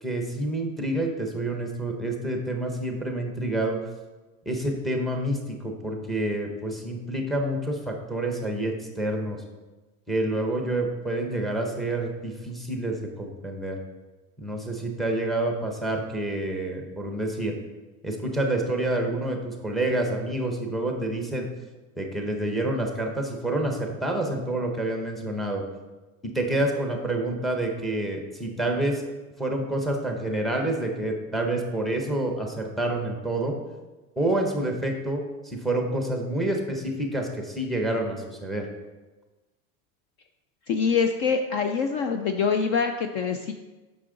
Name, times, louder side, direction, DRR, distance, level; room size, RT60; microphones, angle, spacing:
voice 1, 0.0-3.8 4.5-9.4 10.1-13.8 14.4-17.5 18.0-21.5 22.0-25.6 26.2-29.0 29.4-33.6 34.2-38.7, right 1 dB, ahead, 2 dB, 0.7 m, -28 dB
voice 2, 40.7-43.5, left 5 dB, 40° left, 6 dB, 0.4 m, -25 dB
8.4 x 5.9 x 3.8 m, 1.2 s
supercardioid pair, 160°, 40 cm